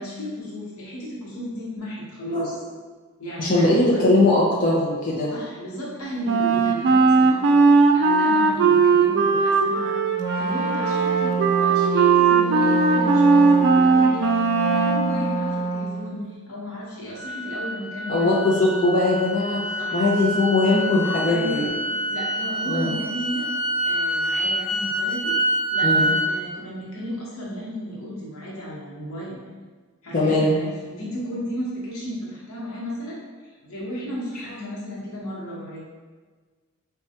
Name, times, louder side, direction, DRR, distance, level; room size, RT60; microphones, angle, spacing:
voice 1, 0.0-2.6 3.2-4.0 5.3-9.9 10.4-18.3 19.8-20.0 21.3-21.7 22.1-23.5 23.8-25.4 25.7-29.4 30.0-33.2 33.6-35.9, equal, 80° left, -6 dB, 1.1 m, -34 dB
voice 2, 3.4-5.3 18.1-21.7 22.7-23.0 25.8-26.1 30.1-30.6, left 2 dB, 40° left, -6 dB, 0.5 m, -20 dB
Wind instrument woodwind instrument, 6.2-15.1, right 4 dB, 55° right, 0.3 m, -18 dB
Wind instrument woodwind instrument 2, 10.1-16.1, right 3 dB, 15° left, 0.9 m, -27 dB
sound 1, 17.1-26.3, right 1 dB, 35° right, 0.9 m, -26 dB
4.3 x 2.3 x 2.8 m, 1.4 s
head